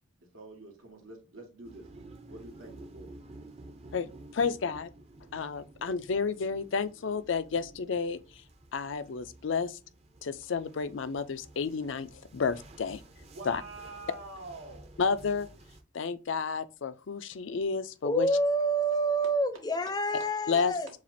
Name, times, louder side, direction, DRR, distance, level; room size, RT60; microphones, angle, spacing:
voice 1, 0.3-1.9 2.3-3.1 13.2-14.9, right 2 dB, 90° right, 1.8 m, -46 dB
sound 1, 1.6-15.8, right 2 dB, 30° right, 0.6 m, -52 dB
voice 2, 3.9-4.9 5.3-8.4 8.7-9.8 10.2-13.0 13.4-13.6 15.0-15.5 15.9-18.3 20.5-20.7, left 5 dB, 70° left, 0.4 m, -31 dB
voice 3, 18.0-20.9, right 1 dB, 20° left, 0.5 m, -28 dB
7.2 x 2.5 x 2.6 m
head